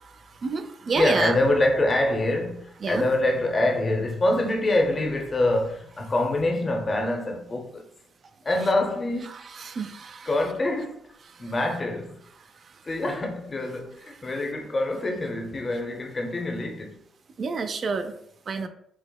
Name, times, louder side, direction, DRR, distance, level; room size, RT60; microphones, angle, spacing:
voice 1, 0.4-1.3 2.8-3.0 9.6-10.3 17.4-18.1 18.5-18.7, right 4 dB, 50° right, 0.4 m, -28 dB
voice 2, 1.0-7.9 8.4-9.3 10.2-11.0 11.4-12.2 12.8-17.0, left 1 dB, 30° left, 0.6 m, -25 dB
5.7 x 2.0 x 2.2 m
cardioid pair, 90°, 0 cm